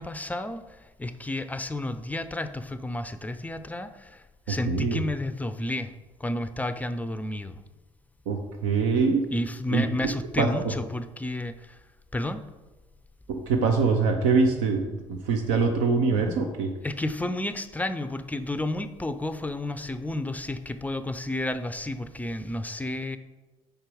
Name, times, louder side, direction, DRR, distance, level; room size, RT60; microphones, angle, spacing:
voice 1, 0.0-5.9 6.2-7.6 9.3-11.8 12.1-12.4 16.8-23.2, left 1 dB, 10° left, 11 dB, 0.5 m, -31 dB
voice 2, 4.5-5.0 8.3-9.2 9.7-9.9 10.4-10.5 13.3-16.7, right 4 dB, 70° right, 4 dB, 0.6 m, -24 dB
5.1 x 4.4 x 4.8 m, 1.2 s
hypercardioid pair, 55°, 17 cm